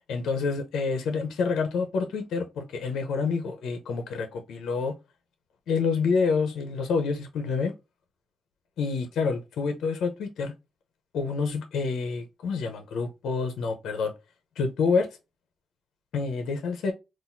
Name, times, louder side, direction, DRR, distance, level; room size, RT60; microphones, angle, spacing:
voice 1, 0.1-4.9 5.7-7.7 8.8-10.5 11.1-14.1 14.6-15.1 16.1-16.9, left 4 dB, 85° left, 0.7 m, -28 dB
3.9 x 2.5 x 2.6 m
cardioid pair, 95°, 0 cm